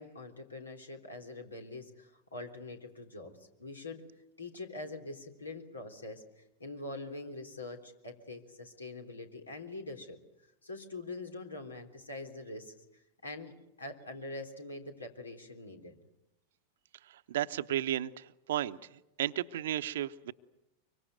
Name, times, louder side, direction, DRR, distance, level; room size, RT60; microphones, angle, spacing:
voice 1, 0.0-4.1 4.4-10.2 10.6-12.7 13.2-16.0, left 2 dB, 85° left, 5 dB, 3.5 m, -44 dB
voice 2, 17.3-18.8 19.2-20.3, right 12 dB, 65° right, 11 dB, 0.9 m, -33 dB
24.5 x 24.0 x 8.0 m, 0.92 s
figure-of-eight pair, 90°, 0 cm